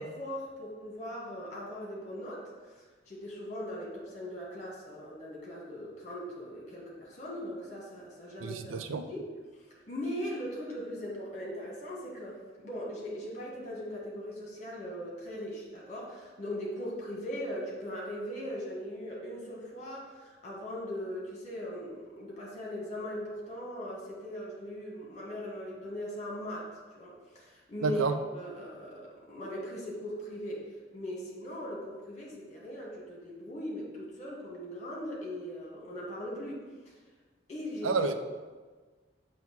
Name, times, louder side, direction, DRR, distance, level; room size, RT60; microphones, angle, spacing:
voice 1, 0.0-8.8 9.1-9.3 9.9-28.0 28.3-36.9 37.5-38.0, equal, 35° left, -3 dB, 1.5 m, -39 dB
voice 2, 8.4-9.1 27.8-28.1 37.8-38.1, right 4 dB, 80° right, 8 dB, 0.5 m, -29 dB
7.0 x 3.0 x 6.0 m, 1.4 s
head